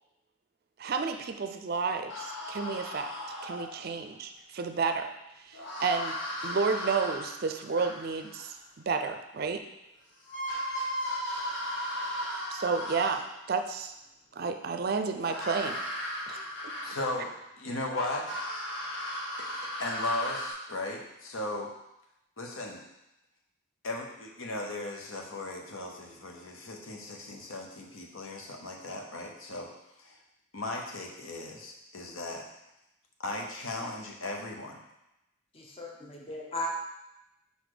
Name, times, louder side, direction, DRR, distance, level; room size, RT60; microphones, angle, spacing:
voice 1, 0.8-3.1 3.4-5.1 5.5-6.2 6.4-9.6 12.5-13.9 14.3-15.8 16.3-16.7, right 5 dB, 50° right, 7 dB, 0.4 m, -31 dB
sound 1, 2.1-4.0 5.5-8.5 9.8-9.9 10.2-13.5 15.2-17.3 17.9-20.5, equal, 60° left, 1.4 m, -36 dB
voice 2, 16.8-17.3 17.6-18.3 19.8-21.7 22.4-22.8 23.8-29.7 30.0-30.2 30.5-32.4 33.2-34.8, left 2 dB, 85° left, 1 dB, 1.0 m, -36 dB
voice 3, 35.5-36.7, left 1 dB, 30° left, -2 dB, 0.9 m, -37 dB
5.1 x 4.1 x 4.9 m, 0.88 s
head